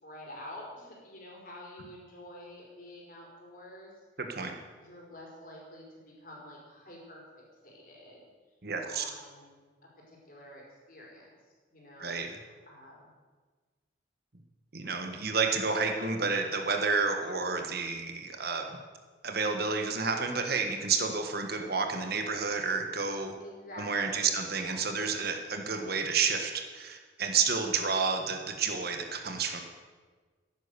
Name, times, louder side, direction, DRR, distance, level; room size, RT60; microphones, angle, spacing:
voice 1, 0.0-3.9 4.8-7.2 7.6-8.3 8.8-9.6 10.1-11.3 11.7-13.1 16.0-16.2 23.4-25.3, left 1 dB, 45° left, -3 dB, 4.8 m, -48 dB
voice 2, 4.2-4.5 8.6-9.0 12.0-12.3 14.7-18.6 19.2-23.3 23.8-29.6, right 5 dB, 50° right, 4 dB, 1.5 m, -30 dB
14.5 x 10.5 x 6.8 m, 1.4 s
head